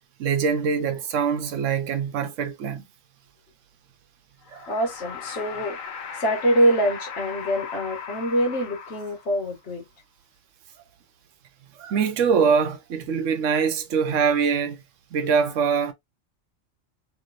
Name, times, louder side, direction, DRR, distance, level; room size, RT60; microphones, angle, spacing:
voice 1, 0.2-2.8 4.5-4.7 11.8-14.8 15.1-15.9, right 6 dB, 75° right, 1.1 m, -23 dB
sound 1, 4.4-9.5, left 6 dB, 90° left, 1.3 m, -37 dB
voice 2, 4.7-5.8 6.1-9.8, equal, 60° left, 1.5 m, -24 dB
3.2 x 3.2 x 2.5 m
omnidirectional pair, 1.3 m